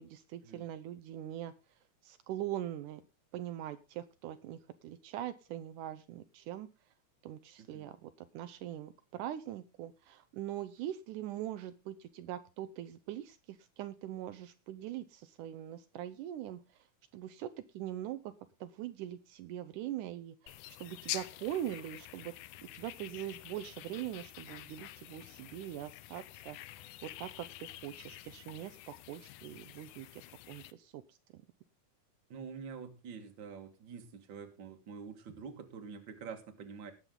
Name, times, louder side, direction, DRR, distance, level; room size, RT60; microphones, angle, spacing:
voice 1, 0.0-1.5 2.0-3.0 3.3-4.6 4.8-6.7 7.2-16.6 17.1-18.3 18.6-20.6 20.8-22.3 22.7-26.6 27.0-30.2 30.5-31.0, right 12 dB, 80° right, 11 dB, 2.2 m, -42 dB
voice 2, 7.6-7.9 32.3-36.9, right 6 dB, 40° right, 6 dB, 2.1 m, -47 dB
sound 1, 20.5-30.7, left 14 dB, 85° left, 2.3 m, -47 dB
19.0 x 7.5 x 3.8 m, 0.28 s
omnidirectional pair, 3.7 m